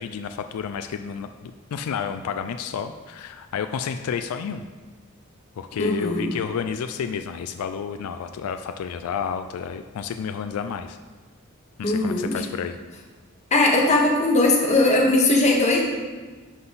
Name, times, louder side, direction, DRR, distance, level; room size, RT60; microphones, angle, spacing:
voice 1, 0.0-4.7 5.6-11.0 11.8-12.8, left 7 dB, 85° left, 8 dB, 0.3 m, -31 dB
voice 2, 5.8-6.3 11.8-12.3 13.5-15.8, left 2 dB, 30° left, 0 dB, 1.1 m, -19 dB
11.0 x 3.8 x 4.0 m, 1.4 s
head